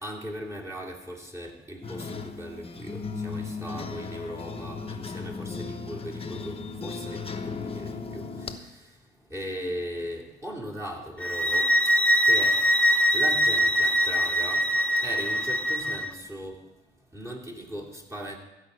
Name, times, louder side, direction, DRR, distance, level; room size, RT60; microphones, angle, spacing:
voice 1, 0.0-8.9 9.3-11.7 12.2-12.6 13.1-14.7 15.0-16.6 17.1-18.4, equal, 15° right, -2 dB, 2.7 m, -38 dB
sound 1, 1.8-8.6, left 4 dB, 30° left, 1.0 m, -36 dB
sound 2, 11.2-16.1, equal, 5° left, 0.7 m, -23 dB
14.5 x 5.3 x 8.1 m, 1.0 s
cardioid pair, 90°, 20 cm